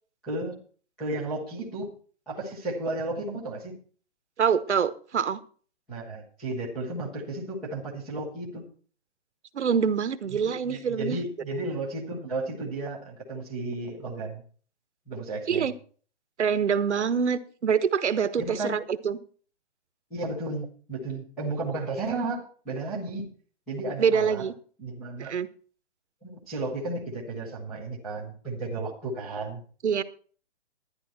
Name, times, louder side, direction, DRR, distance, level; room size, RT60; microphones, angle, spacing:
voice 1, 0.2-0.6 1.0-1.9 2.3-3.8 5.9-8.7 10.3-14.4 15.1-15.7 18.4-18.7 20.1-23.3 23.7-24.4 24.8-25.3 26.2-29.6, right 2 dB, ahead, -7 dB, 0.6 m, -33 dB
voice 2, 4.4-5.4 9.5-11.2 15.5-15.7 16.4-19.2 24.0-24.5 25.2-25.5 29.8-30.0, right 7 dB, 85° right, 13 dB, 1.2 m, -25 dB
12.5 x 10.5 x 4.3 m, 0.42 s
hypercardioid pair, 175°, 34 cm